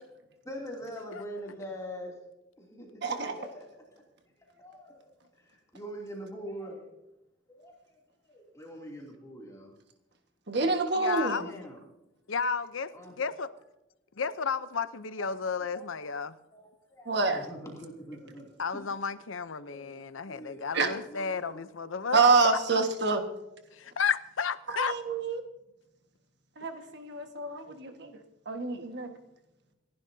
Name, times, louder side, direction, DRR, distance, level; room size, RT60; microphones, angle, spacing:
voice 1, 0.4-2.2 2.6-4.0 4.5-5.1 5.4-6.9 7.5-8.0 8.2-9.7 11.4-11.8 12.9-13.1 15.2-15.3 15.7-15.9 16.5-18.5 18.7-18.8 19.7-21.6, equal, 15° left, -2 dB, 2.8 m, -44 dB
voice 2, 3.0-3.3 10.5-11.4 17.0-17.5 20.7-20.9 22.1-23.2 24.7-25.4 26.6-28.1 28.4-29.1, right 4 dB, 60° right, 5 dB, 1.6 m, -27 dB
voice 3, 10.9-11.5 12.3-12.9 13.2-13.5 14.2-16.4 18.6-22.6 23.7-24.9 26.6-26.7, left 5 dB, 85° left, 14 dB, 0.7 m, -32 dB
28.5 x 11.5 x 2.8 m, 0.95 s
head